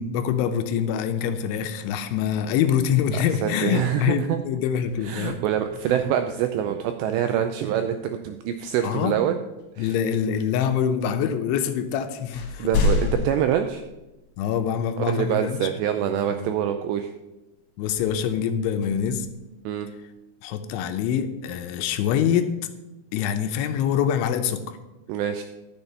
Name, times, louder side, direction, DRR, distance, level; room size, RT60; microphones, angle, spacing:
voice 1, 0.0-5.4 8.8-9.2 9.8-12.7 14.4-15.7 16.1-16.5 17.8-19.3 20.4-22.5 23.1-24.8, left 8 dB, 80° left, 7 dB, 3.0 m, -25 dB
voice 2, 3.1-4.4 5.0-9.4 9.8-9.9 12.6-13.8 15.1-17.1 19.7-19.9 25.1-25.4, right 10 dB, 85° right, 7 dB, 2.5 m, -25 dB
sound 1, 4.4-6.5 8.6-8.8 9.6-10.4 11.2-11.3 11.7-14.6 15.1-15.2 17.8-20.0, left 3 dB, 60° left, 3.1 m, -31 dB
12.0 x 7.3 x 5.4 m, 1.0 s
omnidirectional pair, 5.6 m